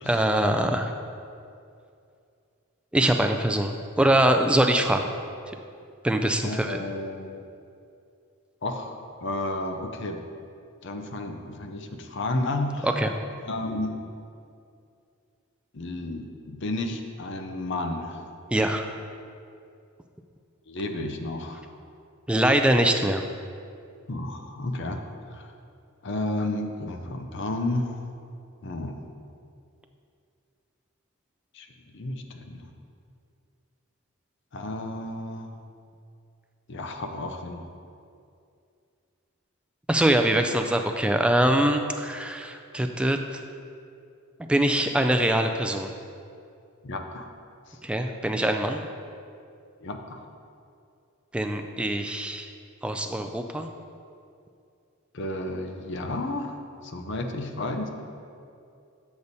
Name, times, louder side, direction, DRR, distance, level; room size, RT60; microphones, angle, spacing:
voice 1, 0.1-0.9 2.9-5.1 6.0-6.8 12.8-13.1 18.5-18.9 22.3-23.2 39.9-43.4 44.4-45.9 47.8-48.8 51.3-52.5 52.8-53.7, right 1 dB, 5° right, 5 dB, 0.3 m, -23 dB
voice 2, 6.4-7.4 8.6-10.2 10.8-12.9 13.5-14.0 15.7-18.2 20.7-21.7 24.1-25.0 25.3-25.5 26.0-28.0 28.6-29.0 31.5-31.7 31.9-32.6 34.5-35.6 36.7-37.6 46.8-47.3 47.7-47.8 49.8-50.2 55.1-56.6 56.8-57.9, left 2 dB, 55° left, 5 dB, 0.6 m, -32 dB
7.0 x 6.5 x 4.1 m, 2.5 s
head